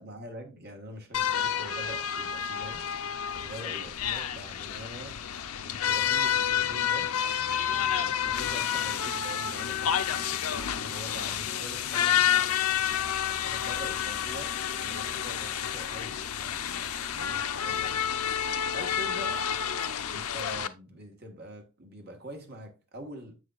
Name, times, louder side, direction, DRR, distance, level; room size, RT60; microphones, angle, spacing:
voice 1, 0.0-5.3 5.6-7.1 7.9-10.4 10.8-12.3 13.4-19.5 20.1-23.3, equal, 45° right, 1.4 m, -45 dB
sound 1, 1.1-20.7, left 9 dB, 90° left, 0.6 m, -29 dB
7.4 x 6.4 x 2.5 m
head